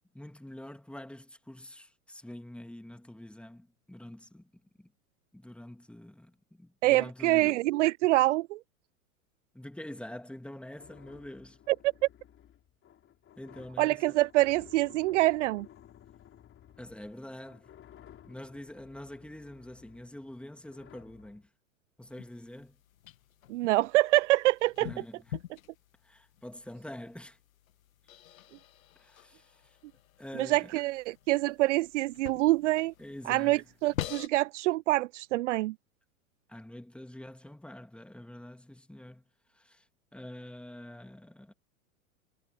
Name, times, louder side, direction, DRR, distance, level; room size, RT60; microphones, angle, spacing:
voice 1, 0.1-4.5 4.8-4.9 5.3-7.6 9.5-11.6 13.4-14.0 16.8-17.7 18.2-21.5 22.0-22.8 24.8-25.4 26.0-27.4 29.0-29.8 30.2-30.7 33.0-33.6 36.5-39.2 39.5-39.8 40.1-41.5, left 1 dB, 5° left, 3.0 m, -46 dB
voice 2, 6.8-8.6 11.7-11.8 13.8-15.7 23.5-24.9 30.4-32.9 33.3-35.7, right 18 dB, 55° right, 0.7 m, -26 dB
sound 1, 10.8-21.5, left 10 dB, 30° left, 5.0 m, -56 dB
sound 2, 22.0-34.3, left 12 dB, 70° left, 1.4 m, -46 dB
figure-of-eight pair, 95°, 43 cm